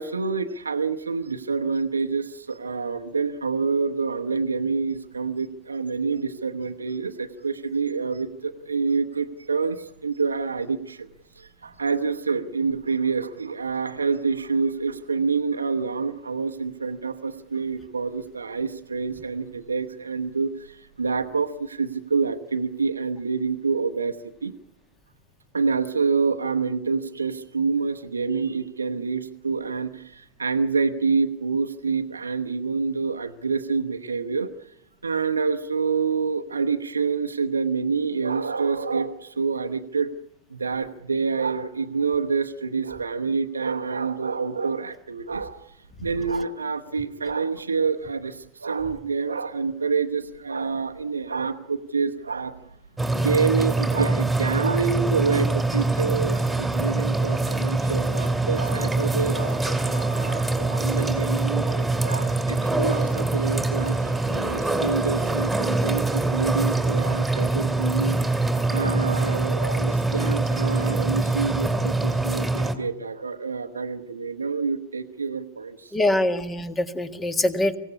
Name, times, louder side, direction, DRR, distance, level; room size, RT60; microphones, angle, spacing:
voice 1, 0.0-11.1 11.4-24.2 24.4-24.5 25.5-34.5 35.0-40.1 40.5-52.8 53.1-68.4 68.7-76.3, right 5 dB, 75° right, 6 dB, 1.0 m, -27 dB
sound 1, 53.0-72.7, right 2 dB, 5° right, 2.6 m, -24 dB
voice 2, 75.9-77.8, left 1 dB, 15° left, 11 dB, 1.8 m, -23 dB
25.0 x 16.5 x 9.7 m, 0.85 s
figure-of-eight pair, 90°, 0 cm